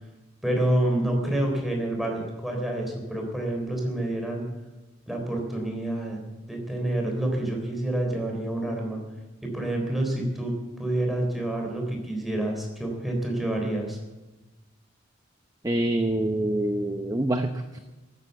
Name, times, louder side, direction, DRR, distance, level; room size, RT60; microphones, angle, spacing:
voice 1, 0.4-4.5 5.1-9.0 9.4-14.0, right 1 dB, ahead, 1 dB, 3.7 m, -28 dB
voice 2, 15.6-17.8, right 1 dB, 20° right, 6 dB, 0.7 m, -26 dB
16.5 x 9.7 x 8.2 m, 1.1 s
head